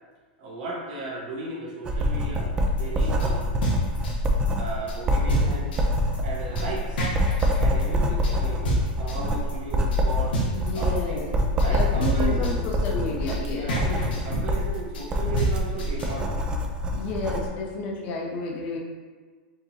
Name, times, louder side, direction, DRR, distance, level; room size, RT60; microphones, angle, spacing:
voice 1, 0.4-3.6 4.6-5.7 6.2-7.1 7.6-8.7 9.0-10.4 10.7-12.6 13.5-16.4, right 2 dB, 55° right, -3 dB, 1.1 m, -35 dB
Writing, 1.8-17.5, equal, 15° right, 0.3 m, -25 dB
sound 1, 2.8-16.2, right 1 dB, 80° left, 1.0 m, -29 dB
voice 2, 10.5-11.3 11.7-13.7 16.9-18.8, left 3 dB, 30° left, -2 dB, 0.6 m, -31 dB
4.5 x 2.9 x 2.7 m, 1.5 s
supercardioid pair, 160°, 5 cm